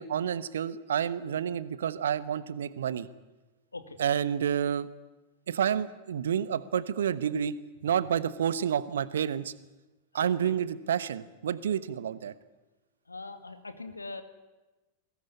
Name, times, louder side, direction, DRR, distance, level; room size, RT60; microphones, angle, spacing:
voice 1, 0.0-3.1 4.0-4.9 5.5-7.5 7.8-9.5 10.1-12.3, right 8 dB, 65° right, 16 dB, 1.1 m, -29 dB
voice 2, 10.1-10.5 13.1-14.2, left 3 dB, 80° left, 9 dB, 2.2 m, -41 dB
21.5 x 18.0 x 9.9 m, 1.1 s
figure-of-eight pair, 90°, 0 cm